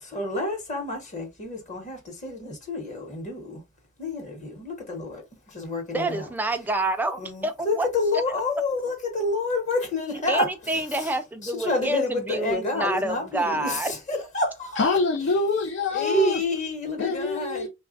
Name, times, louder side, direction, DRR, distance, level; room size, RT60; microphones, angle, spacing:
voice 1, 0.0-3.6 4.0-6.3 7.2-11.1 11.4-14.9 15.9-17.7, left 2 dB, 35° left, 1.0 m, -29 dB
voice 2, 5.9-7.9 10.3-13.9, right 2 dB, 10° right, 0.3 m, -28 dB
voice 3, 14.8-16.4 17.0-17.7, left 3 dB, 60° left, 0.5 m, -25 dB
3.1 x 2.3 x 2.5 m
head